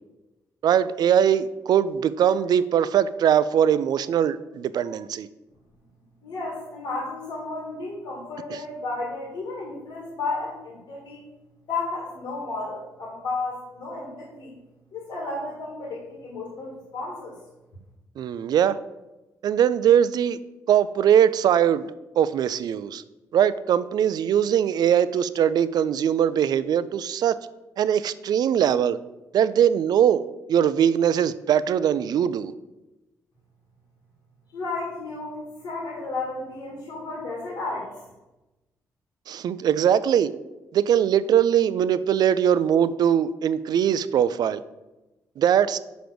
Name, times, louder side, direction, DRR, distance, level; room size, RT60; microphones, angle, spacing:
voice 1, 0.6-5.3 8.5-8.6 18.2-18.8 19.4-20.4 20.7-21.9 22.2-23.0 23.3-27.4 27.8-29.0 29.3-30.2 30.5-32.5 39.3-40.3 40.7-44.6 45.4-45.8, right 9 dB, 70° right, 15 dB, 0.4 m, -21 dB
voice 2, 6.2-11.2 11.7-14.5 14.9-17.4 34.5-38.0, left 3 dB, 80° left, -3 dB, 1.7 m, -33 dB
5.1 x 5.1 x 6.0 m, 1.0 s
cardioid pair, 65°, 7 cm